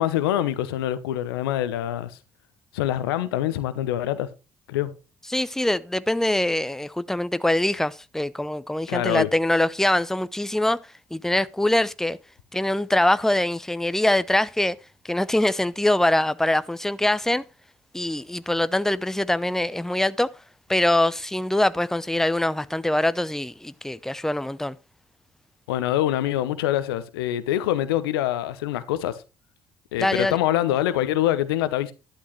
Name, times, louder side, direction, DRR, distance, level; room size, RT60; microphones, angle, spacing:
voice 1, 0.0-2.2 2.7-4.3 4.7-4.9 8.9-9.3 25.7-29.2 29.9-31.9, left 13 dB, 80° left, 0.9 m, -25 dB
voice 2, 5.3-10.8 11.1-12.2 12.5-14.8 15.0-17.4 17.9-20.3 20.7-24.8 30.0-30.4, left 1 dB, 5° left, 0.7 m, -23 dB
11.5 x 11.5 x 3.2 m
hypercardioid pair, 50°, 12 cm